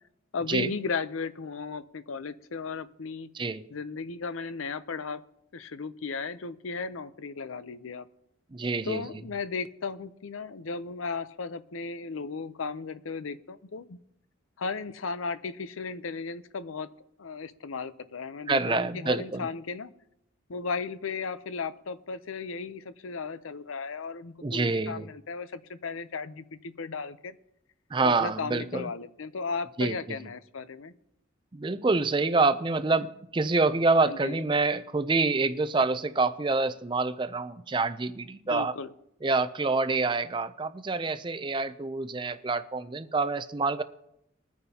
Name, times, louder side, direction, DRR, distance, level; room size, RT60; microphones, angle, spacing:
voice 1, 0.3-3.3 3.7-5.2 5.5-8.1 8.9-14.0 14.6-16.9 17.2-19.9 20.5-27.3 28.0-30.9 34.0-34.4 38.5-38.9, left 4 dB, 90° left, 14 dB, 0.6 m, -35 dB
voice 2, 8.5-9.0 18.5-19.5 24.4-25.1 27.9-28.9 29.8-30.2 31.5-38.7 39.2-43.8, right 3 dB, 25° right, 12 dB, 0.4 m, -27 dB
21.5 x 9.5 x 2.8 m, 0.78 s
head